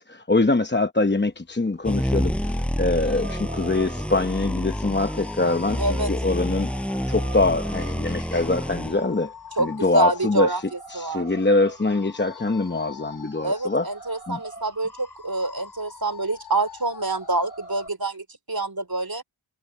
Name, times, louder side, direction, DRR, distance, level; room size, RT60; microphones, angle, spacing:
voice 1, 0.0-6.7 7.1-9.3 9.6-10.6 10.9-13.9 14.3-14.4, left 2 dB, 25° left, 0.8 m, -24 dB
sound 1, 1.8-17.9, left 3 dB, 55° left, 3.5 m, -42 dB
sound 2, 1.8-9.0, equal, ahead, 6.0 m, -28 dB
voice 2, 5.8-6.1 9.6-10.6 10.9-11.3 13.4-19.2, right 2 dB, 50° right, 4.0 m, -26 dB
wide cardioid pair, 40°, 47 cm